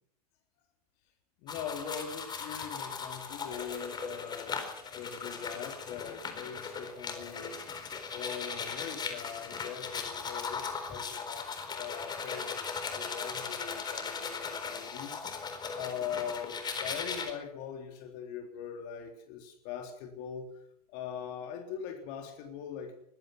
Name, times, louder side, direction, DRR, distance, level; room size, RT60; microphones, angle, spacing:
voice 1, 1.4-7.6 8.1-15.2 15.7-23.0, left 8 dB, 45° left, 5 dB, 3.5 m, -42 dB
sound 1, 1.5-17.3, left 5 dB, 20° left, 4.3 m, -38 dB
23.5 x 19.5 x 6.1 m, 0.68 s
figure-of-eight pair, 90°, 20 cm